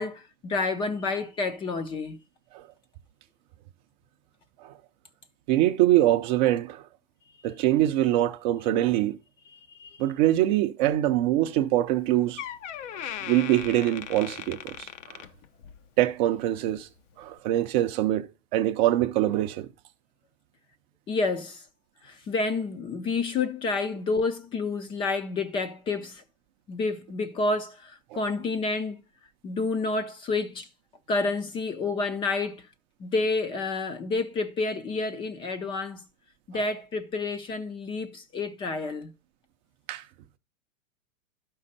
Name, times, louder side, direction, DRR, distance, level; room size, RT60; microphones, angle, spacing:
voice 1, 0.0-2.2 9.5-10.0 21.1-21.6 22.0-26.2 26.7-29.0 29.4-30.7 31.1-32.7 33.0-36.0 36.5-39.1, left 3 dB, 15° left, 0.4 m, -29 dB
voice 2, 5.5-6.8 7.4-9.2 10.0-12.4 12.9-15.2 16.0-16.9 17.2-19.7 28.1-28.2 36.5-36.6 39.9-40.0, right 14 dB, 35° right, 0.5 m, -24 dB
Door, 11.9-12.0 12.4-15.9 16.2-16.5 17.2-17.3, left 10 dB, 60° left, 0.7 m, -39 dB
11.5 x 5.4 x 4.1 m
hypercardioid pair, 140°, 40 cm